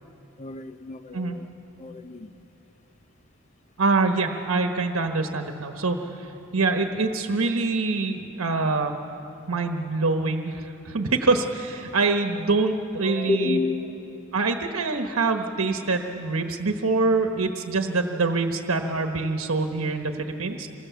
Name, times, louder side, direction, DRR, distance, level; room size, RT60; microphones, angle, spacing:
voice 1, 0.4-1.5 1.8-2.3 13.0-14.4, left 3 dB, 35° left, 11 dB, 0.8 m, -30 dB
voice 2, 3.8-6.3 6.5-8.9 9.5-13.6 14.3-20.7, right 3 dB, 75° right, 5 dB, 1.2 m, -25 dB
27.5 x 23.0 x 7.1 m, 3.0 s
head